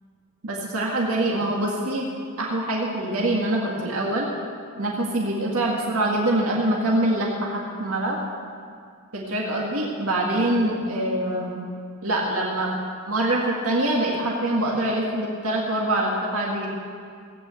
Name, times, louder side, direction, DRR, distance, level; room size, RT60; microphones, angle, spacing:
voice 1, 0.4-2.1 2.4-4.3 4.8-8.2 9.1-11.6 12.0-12.7 13.1-16.7, right 1 dB, 75° right, -2 dB, 2.0 m, -24 dB
17.0 x 9.2 x 7.9 m, 2.3 s
head